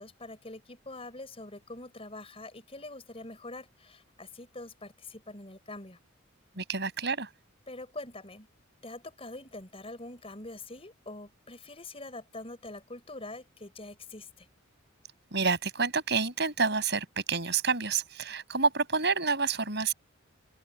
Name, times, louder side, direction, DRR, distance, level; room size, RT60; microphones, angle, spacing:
voice 1, 0.0-6.0 7.7-8.5 8.8-14.5, left 2 dB, 30° left, 5.3 m, -44 dB
voice 2, 6.6-7.3 15.3-19.9, right 5 dB, 55° right, 6.5 m, -28 dB
open air
head